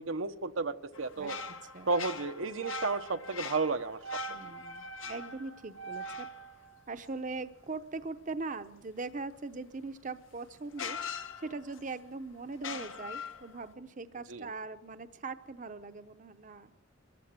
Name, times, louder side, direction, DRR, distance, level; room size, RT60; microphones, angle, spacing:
voice 1, 0.0-1.3 1.9-4.0 14.3-14.5, right 4 dB, 85° right, 8 dB, 0.9 m, -32 dB
sound 1, 0.9-7.5 9.9-10.0 10.7-11.9 12.5-13.7, left 3 dB, 85° left, 1.4 m, -42 dB
voice 2, 1.6-1.9 4.3-6.3 6.9-11.0 11.4-16.7, right 3 dB, 40° right, 10 dB, 0.7 m, -41 dB
24.0 x 14.5 x 8.9 m, 0.93 s
head